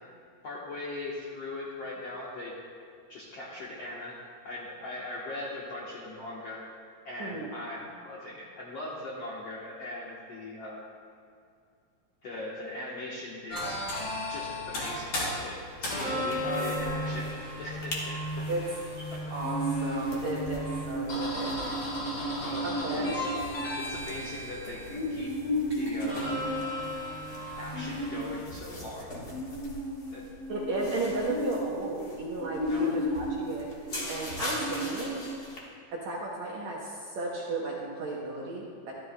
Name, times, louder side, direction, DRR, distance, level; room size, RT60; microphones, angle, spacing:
voice 1, 0.4-2.6 3.1-4.2 4.4-6.7 7.0-10.9 12.2-13.8 14.3-18.5 19.1-19.2 20.7-21.0 22.2-22.6 22.9-23.3 23.8-26.8 27.6-29.1 30.1-30.3 32.6-33.0, left 2 dB, 70° left, -6 dB, 1.5 m, -40 dB
voice 2, 7.2-7.5 16.1-17.0 18.5-18.7 19.3-21.7 22.6-23.2 30.5-33.7 34.1-35.2 35.9-38.9, right 2 dB, 70° right, -4 dB, 1.8 m, -34 dB
sound 1, 13.5-28.4, left 1 dB, 45° left, 3.3 m, -35 dB
sound 2, 16.3-16.9 17.2-17.3 17.6-18.0 18.4-35.6, equal, 85° left, 0.8 m, -34 dB
12.5 x 12.5 x 2.2 m, 2.4 s
omnidirectional pair, 4.3 m